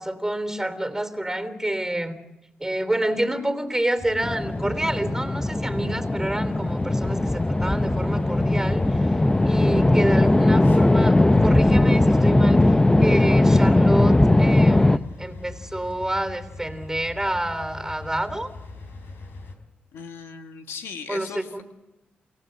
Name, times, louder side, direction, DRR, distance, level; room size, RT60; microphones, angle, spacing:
voice 1, 0.0-2.2 2.6-9.1 9.5-18.5 21.1-21.6, right 1 dB, 10° right, 10 dB, 3.2 m, -28 dB
sound 1, 4.0-19.6, left 3 dB, 60° left, 4.4 m, -41 dB
sound 2, 4.2-15.0, left 2 dB, 15° left, 0.7 m, -19 dB
voice 2, 19.9-21.6, left 6 dB, 85° left, 6 dB, 1.7 m, -38 dB
29.0 x 16.0 x 7.8 m, 1.0 s
supercardioid pair, 50°, 4 cm